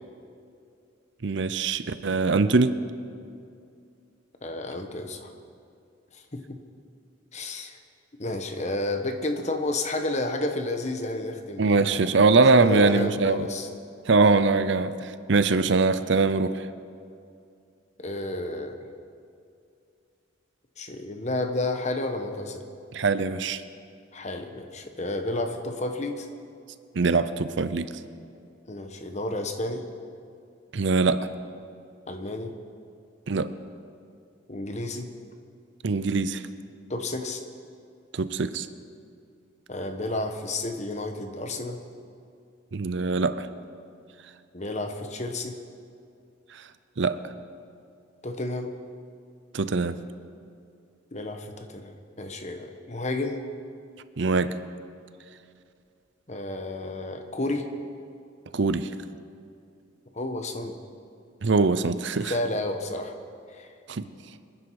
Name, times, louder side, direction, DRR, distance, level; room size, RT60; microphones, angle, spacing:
voice 1, 1.2-2.8 11.6-13.5 14.1-16.7 22.9-23.6 26.9-27.9 30.7-31.3 33.3-33.5 35.8-36.4 38.1-38.7 42.7-43.5 47.0-47.2 49.5-50.0 54.2-54.5 58.5-58.9 61.4-62.3 63.9-64.1, right 3 dB, 60° right, 13 dB, 0.6 m, -22 dB
voice 2, 4.4-5.3 6.1-6.6 7.3-7.8 8.2-12.1 12.5-13.7 18.0-18.8 20.8-22.6 24.1-26.3 28.7-29.8 32.1-32.5 34.5-35.1 36.9-37.4 39.7-41.8 44.5-45.6 48.2-48.7 51.1-51.9 52.2-53.4 56.3-57.6 60.1-60.7 62.3-63.1 63.5-63.7, left 2 dB, 35° left, 6 dB, 1.2 m, -31 dB
26.5 x 9.9 x 4.8 m, 2.5 s
head